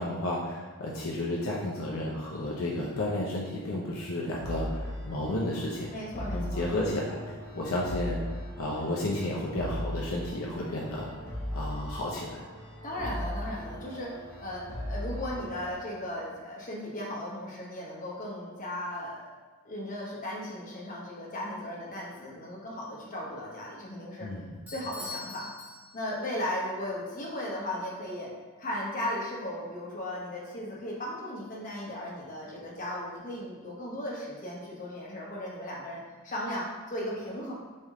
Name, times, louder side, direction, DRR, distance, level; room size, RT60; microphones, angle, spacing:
voice 1, 0.0-5.9 6.2-8.2 8.6-11.1 11.5-12.4 24.2-24.5, left 1 dB, 65° left, -4 dB, 0.6 m, -32 dB
sound 1, 4.4-15.7, equal, 15° left, 1.4 m, -38 dB
voice 2, 5.9-6.6 12.8-19.3 19.6-24.3 24.7-25.5 25.9-28.3 28.6-37.5, left 1 dB, 40° left, -4 dB, 1.0 m, -36 dB
Bell / Doorbell, 24.7-26.4, left 3 dB, 5° right, 1.1 m, -43 dB
4.2 x 3.4 x 3.6 m, 1.4 s
head